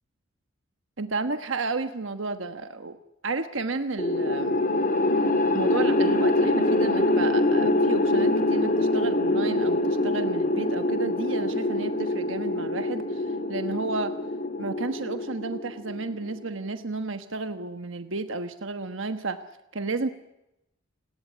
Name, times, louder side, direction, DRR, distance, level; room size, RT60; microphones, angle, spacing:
voice 1, 1.0-3.0 3.2-4.6 5.5-14.1 14.6-19.4 19.7-20.1, right 3 dB, 70° right, 8 dB, 1.2 m, -32 dB
sound 1, 4.0-16.3, left 1 dB, 45° left, 3.4 m, -24 dB
29.0 x 18.0 x 9.5 m, 0.92 s
head